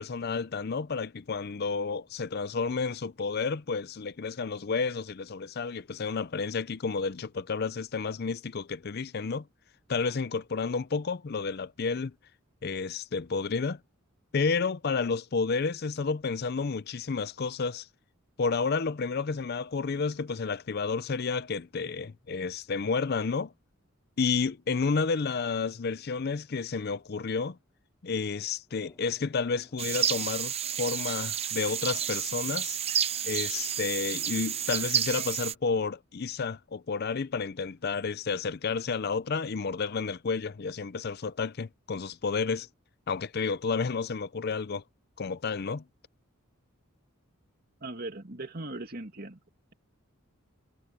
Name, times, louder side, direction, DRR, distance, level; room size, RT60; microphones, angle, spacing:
voice 1, 0.0-9.4 9.9-12.1 12.6-13.8 14.3-17.9 18.4-23.5 24.2-27.6 28.0-32.8 33.2-42.7 43.1-44.8 45.2-45.8, left 4 dB, 50° left, 0.5 m, -31 dB
sound 1, 28.7-34.8, left 1 dB, 15° left, 4.5 m, -61 dB
sound 2, 29.8-35.5, right 9 dB, 30° right, 0.8 m, -30 dB
voice 2, 47.8-49.4, right 2 dB, 45° right, 2.4 m, -39 dB
head